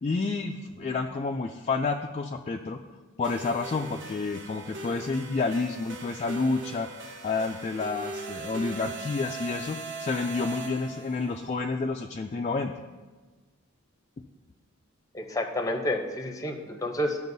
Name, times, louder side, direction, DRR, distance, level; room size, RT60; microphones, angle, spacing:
voice 1, 0.0-2.8 3.2-12.7, left 3 dB, 30° left, 3 dB, 0.3 m, -30 dB
sound 1, 3.2-11.3, right 2 dB, 60° right, 0.9 m, -40 dB
voice 2, 15.1-17.2, left 1 dB, 15° left, 5 dB, 0.7 m, -30 dB
14.0 x 5.4 x 2.7 m, 1.3 s
head